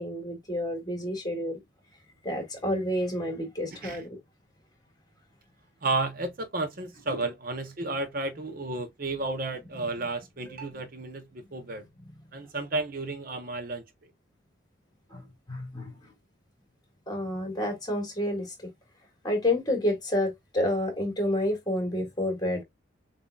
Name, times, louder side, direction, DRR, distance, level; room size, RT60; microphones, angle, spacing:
voice 1, 0.0-1.6 2.2-4.2 7.1-7.2 15.1-15.9 17.1-18.7 19.2-22.6, left 1 dB, 20° left, 1.9 m, -29 dB
voice 2, 5.8-11.8 12.3-13.8, right 2 dB, 45° right, 0.7 m, -32 dB
7.0 x 2.6 x 2.3 m
head